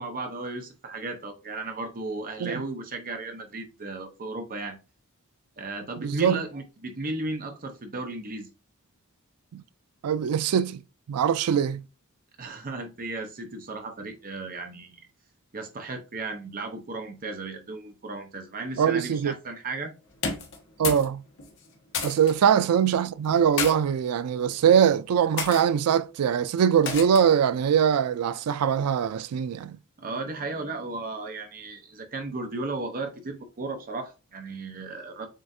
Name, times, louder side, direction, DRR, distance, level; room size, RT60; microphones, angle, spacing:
voice 1, 0.0-4.8 5.6-8.5 12.4-15.1 15.5-19.9 30.0-35.3, right 3 dB, 40° right, 0.7 m, -35 dB
voice 2, 6.0-6.4 9.5-9.6 10.0-10.8 11.1-11.8 18.8-19.3 20.8-21.2 22.0-29.8, right 8 dB, 85° right, 0.3 m, -22 dB
sound 1, 20.1-21.1 21.4-22.3 23.2-23.7 24.5-24.8 25.4-25.6 26.9-27.3, left 5 dB, 60° left, 1.2 m, -31 dB
7.4 x 2.5 x 2.6 m
head